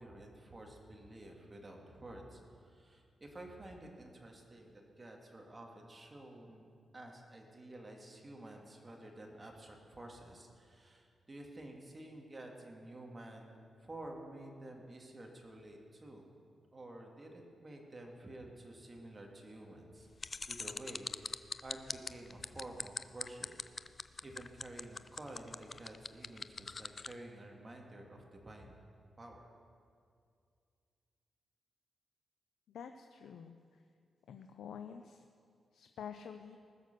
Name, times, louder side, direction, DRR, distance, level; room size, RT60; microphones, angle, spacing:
voice 1, 0.0-6.7 6.9-16.3 16.7-20.1 20.5-23.5 24.2-28.8 29.2-29.5, right 1 dB, 25° right, 1 dB, 1.9 m, -51 dB
sound 1, 20.2-27.1, left 4 dB, 35° left, 0.4 m, -41 dB
voice 2, 32.7-33.6 34.3-35.2 35.7-36.6, left 7 dB, 90° left, 7 dB, 0.5 m, -48 dB
20.0 x 6.8 x 6.6 m, 2.3 s
wide cardioid pair, 115°, 0 cm